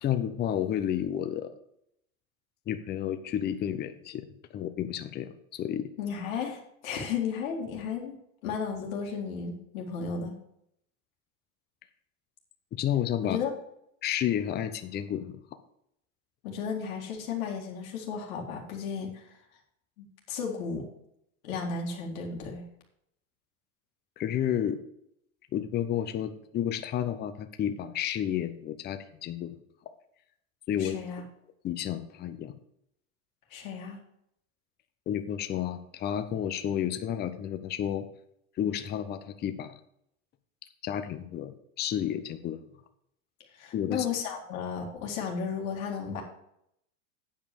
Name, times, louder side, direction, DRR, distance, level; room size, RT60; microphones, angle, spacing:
voice 1, 0.0-1.5 2.7-4.3 4.5-5.9 12.7-13.4 14.0-15.4 24.2-24.8 25.5-29.6 30.7-31.0 31.6-32.5 35.1-38.1 38.6-39.7 40.8-42.6 43.7-44.1, left 10 dB, 25° left, 10 dB, 0.7 m, -31 dB
voice 2, 6.0-8.2 8.4-10.3 13.2-13.5 16.4-19.4 20.0-20.8 21.4-22.7 30.8-31.2 33.5-34.0 43.5-46.2, left 6 dB, 75° left, 0 dB, 2.2 m, -34 dB
8.9 x 5.2 x 7.0 m, 0.76 s
supercardioid pair, 125°, 41 cm